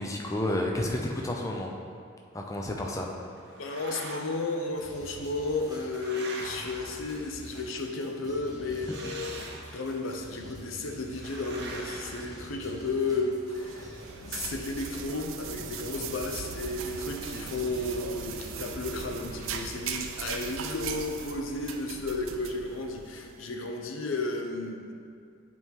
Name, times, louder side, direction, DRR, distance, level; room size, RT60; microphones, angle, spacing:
voice 1, 0.0-1.7 2.3-3.1, left 1 dB, 15° left, 0 dB, 0.5 m, -30 dB
sound 1, 3.4-4.6 5.4-7.6 8.7-10.1 11.1-13.0, right 2 dB, 55° right, 0.8 m, -43 dB
voice 2, 3.6-24.8, left 2 dB, 85° left, 3 dB, 0.7 m, -33 dB
sound 2, 4.8-19.5, right 1 dB, 20° right, 1.0 m, -48 dB
sound 3, 13.4-23.4, right 6 dB, 80° right, 0.4 m, -39 dB
8.1 x 4.7 x 3.6 m, 2.3 s
head